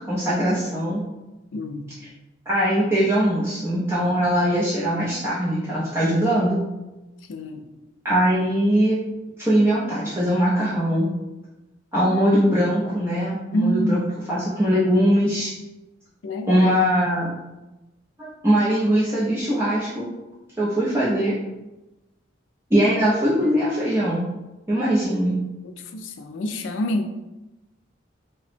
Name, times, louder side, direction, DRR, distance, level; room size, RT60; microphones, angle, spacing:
voice 1, 0.1-1.0 2.5-6.6 8.0-9.0 9.4-11.1 11.9-15.5 16.5-17.3 18.2-20.1 20.6-21.3 22.7-24.2 24.7-25.4, equal, 15° right, -9 dB, 0.4 m, -21 dB
voice 2, 1.5-1.9 7.3-7.6 13.5-14.0 16.2-16.6 21.3-21.4 25.9-27.2, equal, 70° left, 6 dB, 0.3 m, -26 dB
2.8 x 2.0 x 3.2 m, 1.0 s
head